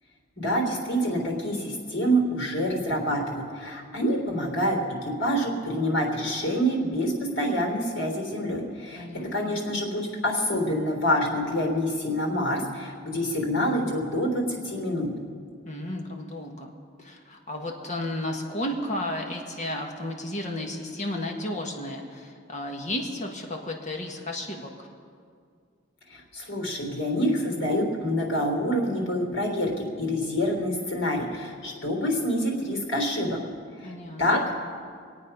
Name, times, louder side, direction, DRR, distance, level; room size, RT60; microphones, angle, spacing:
voice 1, 0.4-9.1 9.3-15.1 26.1-33.4 33.8-33.9 34.2-34.5, equal, 80° left, 1 dB, 3.5 m, -27 dB
voice 2, 9.0-9.6 15.6-16.7 17.0-24.9 33.8-34.5, left 1 dB, 40° left, 2 dB, 1.5 m, -33 dB
25.0 x 8.7 x 5.5 m, 2.2 s
head